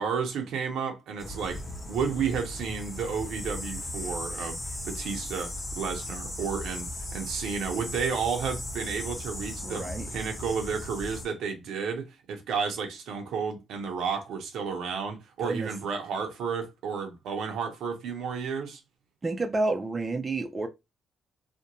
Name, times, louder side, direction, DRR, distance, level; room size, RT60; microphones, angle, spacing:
voice 1, 0.0-1.6 1.9-4.6 4.8-18.8, right 6 dB, 80° right, 0.7 m, -32 dB
sound 1, 1.2-11.3, left 1 dB, 20° left, 0.9 m, -37 dB
voice 2, 9.6-10.0 15.4-15.7 19.2-20.7, right 2 dB, 30° right, 0.4 m, -29 dB
2.5 x 2.1 x 2.8 m
cardioid pair, 90°, 0 cm